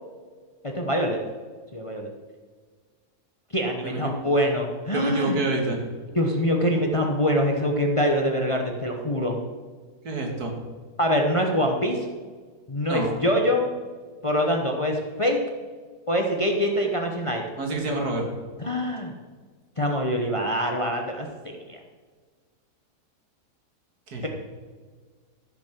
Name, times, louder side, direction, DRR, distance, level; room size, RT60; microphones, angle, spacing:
voice 1, 0.6-1.2 1.7-2.1 3.5-5.4 6.1-9.4 11.0-12.1 12.7-13.7 14.2-15.4 16.1-17.4 17.9-18.0 18.6-19.1 19.8-21.8, equal, 25° left, 2 dB, 0.9 m, -24 dB
voice 2, 4.9-5.8 10.0-10.5 12.8-13.1 17.6-18.3 24.1-24.3, right 2 dB, 75° right, 2 dB, 2.3 m, -27 dB
13.5 x 6.2 x 5.9 m, 1.5 s
omnidirectional pair, 1.6 m